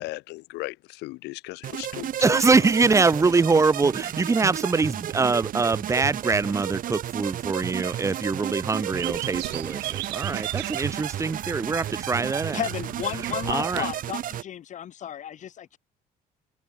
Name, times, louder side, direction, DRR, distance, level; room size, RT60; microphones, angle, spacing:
voice 1, 0.0-2.4, left 21 dB, 90° left, 0.9 m, -36 dB
sound 1, 1.6-14.4, right 11 dB, 55° right, 1.2 m, -33 dB
voice 2, 2.2-12.6 13.5-13.9, right 4 dB, 15° right, 0.8 m, -23 dB
sound 2, 8.9-13.9, right 20 dB, 90° right, 2.3 m, -37 dB
voice 3, 12.5-15.8, left 10 dB, 45° left, 0.7 m, -33 dB
cardioid pair, 110°, 17 cm